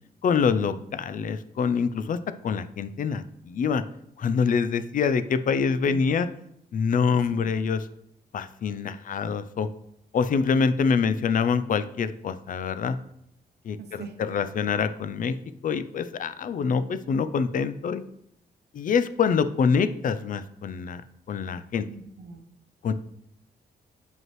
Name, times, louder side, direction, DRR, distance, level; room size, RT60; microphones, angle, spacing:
voice 1, 0.2-3.8 4.2-6.3 6.7-7.9 8.3-9.7 10.1-13.0 13.6-15.4 15.6-18.0 18.7-21.0 21.3-21.9 22.8-22.9, left 6 dB, 55° left, 12 dB, 0.4 m, -25 dB
voice 2, 5.4-6.2 7.3-7.5 13.8-14.2 21.9-22.4, right 4 dB, 80° right, 6 dB, 0.8 m, -43 dB
7.5 x 5.2 x 3.1 m, 0.76 s
cardioid pair, 100°, 17 cm